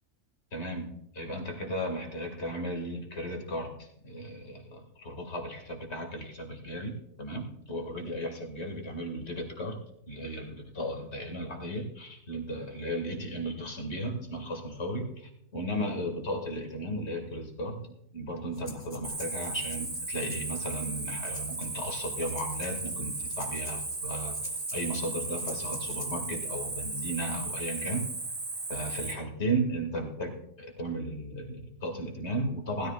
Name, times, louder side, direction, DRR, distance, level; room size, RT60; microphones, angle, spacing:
voice 1, 0.5-28.1 28.7-32.9, right 1 dB, 60° left, 2 dB, 2.5 m, -35 dB
Breathing, 18.5-26.3, left 3 dB, 35° left, 1.7 m, -49 dB
Cricket, 19.0-29.1, right 3 dB, 90° right, 2.6 m, -36 dB
19.5 x 13.5 x 2.5 m, 0.75 s
omnidirectional pair, 1.3 m